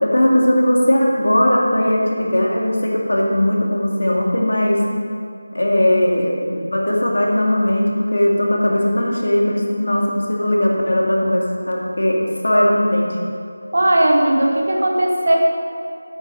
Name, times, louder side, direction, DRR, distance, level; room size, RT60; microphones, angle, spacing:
voice 1, 0.0-4.8 5.5-13.2, left 1 dB, 80° left, -2 dB, 2.3 m, -18 dB
voice 2, 13.7-15.4, right 1 dB, 55° right, 0 dB, 1.6 m, -16 dB
9.0 x 7.3 x 5.2 m, 2.5 s
figure-of-eight pair, 170°, 0 cm